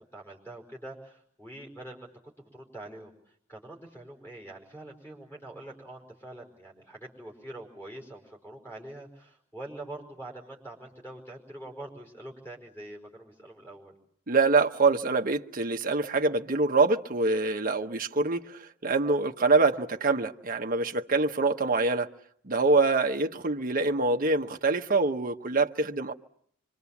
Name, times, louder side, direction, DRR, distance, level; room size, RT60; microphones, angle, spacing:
voice 1, 0.1-2.1 2.4-13.9, right 1 dB, 10° left, 4.8 m, -44 dB
voice 2, 14.3-22.1 22.4-26.1, right 3 dB, 40° right, 1.0 m, -25 dB
25.0 x 25.0 x 7.2 m
head